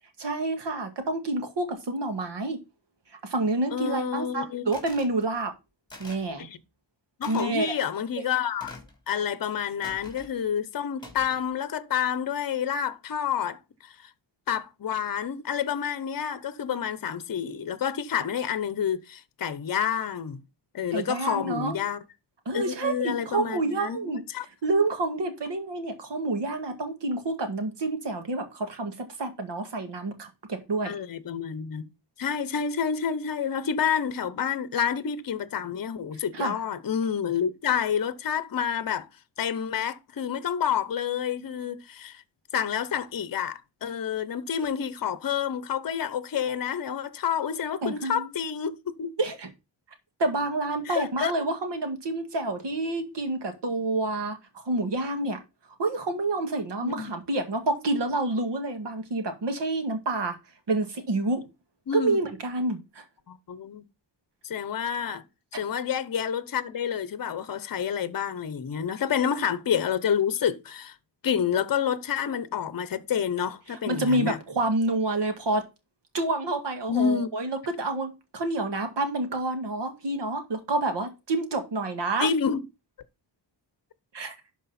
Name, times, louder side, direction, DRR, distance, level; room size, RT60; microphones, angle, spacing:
voice 1, 0.2-2.6 3.2-5.5 6.0-6.5 7.3-7.8 20.9-21.8 22.5-24.2 24.6-30.9 36.3-36.6 47.8-48.3 49.2-49.5 50.2-55.4 55.8-60.4 60.7-61.4 61.9-63.0 73.7-75.6 76.1-82.3 84.1-84.3, right 2 dB, 70° right, 2.1 m, -28 dB
voice 2, 3.7-4.6 6.4-6.6 7.2-8.7 9.1-14.1 14.5-20.4 20.7-22.0 22.5-24.5 30.8-31.9 32.2-39.1 39.4-42.2 42.5-49.1 50.9-51.3 56.8-57.1 61.9-62.2 63.3-63.8 64.4-65.2 65.5-70.9 71.2-74.4 76.9-77.3 82.2-82.6, left 8 dB, 50° left, 0.8 m, -29 dB
sound 1, 4.7-5.1 5.9-6.3 7.2-7.5 8.6-9.0 9.8-10.3 11.0-11.5, left 2 dB, 10° left, 3.3 m, -45 dB
11.5 x 4.7 x 4.2 m
wide cardioid pair, 115°, 44 cm